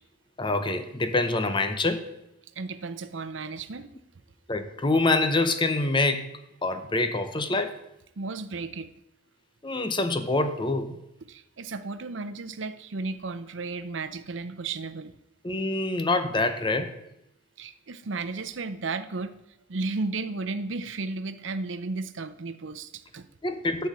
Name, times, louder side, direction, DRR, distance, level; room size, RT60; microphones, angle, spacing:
voice 1, 0.4-2.1 4.5-7.7 9.6-11.0 15.4-16.9 23.4-23.9, left 2 dB, 25° left, 9 dB, 0.8 m, -26 dB
voice 2, 2.6-3.9 8.2-8.9 11.3-15.2 17.6-19.4 19.7-23.3, right 3 dB, 75° right, 11 dB, 0.7 m, -34 dB
12.0 x 4.5 x 8.0 m, 0.85 s
head